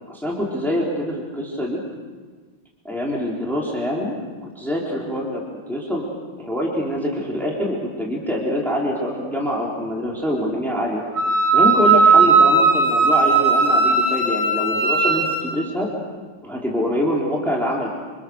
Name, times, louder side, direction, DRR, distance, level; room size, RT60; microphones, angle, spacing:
voice 1, 0.1-1.8 2.8-4.1 4.6-5.4 5.7-6.1 6.4-11.0 11.5-15.9 16.4-17.9, equal, ahead, -3 dB, 3.8 m, -24 dB
Wind instrument woodwind instrument, 11.2-15.4, right 4 dB, 70° right, 8.3 m, -16 dB
27.5 x 27.5 x 6.6 m, 1.4 s
omnidirectional pair, 2.4 m